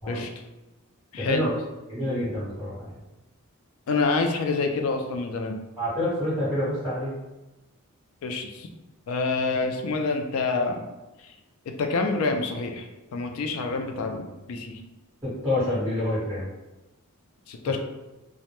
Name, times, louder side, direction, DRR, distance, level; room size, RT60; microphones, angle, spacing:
voice 1, 1.1-1.5 2.0-2.1 3.9-5.6 8.2-8.7 9.1-10.8 11.8-14.8 17.5-17.8, left 3 dB, 65° left, 4 dB, 0.3 m, -27 dB
voice 2, 1.9-2.9 5.8-7.1 15.2-16.5 17.6-17.8, left 1 dB, 10° right, -12 dB, 1.0 m, -27 dB
2.1 x 2.0 x 2.9 m, 1.0 s
head